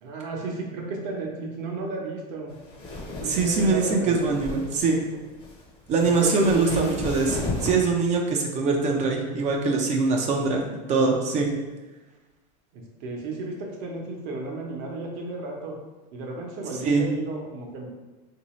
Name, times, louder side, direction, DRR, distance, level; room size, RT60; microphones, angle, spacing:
voice 1, 0.0-2.5 3.2-4.4 6.0-6.9 12.7-15.7 16.1-17.9, right 3 dB, 55° right, 0 dB, 0.9 m, -32 dB
sound 1, 2.5-7.8, left 2 dB, 25° left, 0.7 m, -34 dB
voice 2, 3.2-5.0 5.9-10.6 10.9-11.5 16.8-17.0, right 4 dB, 35° right, 1 dB, 0.5 m, -23 dB
3.6 x 2.7 x 3.1 m, 1.2 s
supercardioid pair, 125°, 20 cm